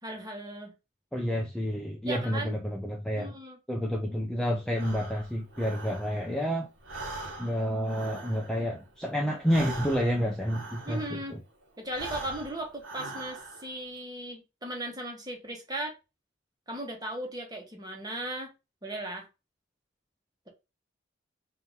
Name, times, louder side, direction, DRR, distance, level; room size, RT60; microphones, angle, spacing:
voice 1, 0.0-0.7 2.0-2.5 3.1-3.6 10.8-11.4 11.8-15.9 16.7-18.5 18.8-19.3 20.5-20.6, right 1 dB, 20° right, 1.2 m, -37 dB
voice 2, 1.1-3.3 3.7-6.7 7.4-11.4, equal, 5° left, 0.5 m, -29 dB
Breathing, 4.7-6.5 6.8-11.4 11.8-13.8, right 2 dB, 80° right, 1.4 m, -42 dB
3.8 x 2.8 x 3.8 m
head